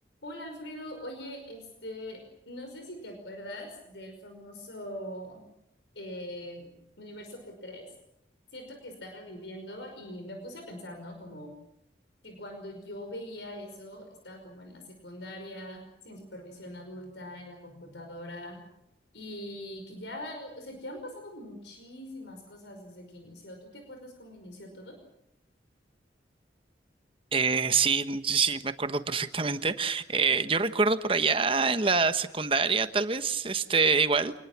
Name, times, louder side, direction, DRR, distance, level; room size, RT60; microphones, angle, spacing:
voice 1, 0.2-5.4 5.9-7.9 8.5-11.5 12.2-18.6 19.1-25.0, left 1 dB, 90° left, 4 dB, 5.4 m, -42 dB
voice 2, 27.3-34.4, right 4 dB, 30° right, 10 dB, 1.2 m, -26 dB
26.5 x 20.5 x 7.4 m, 0.78 s
head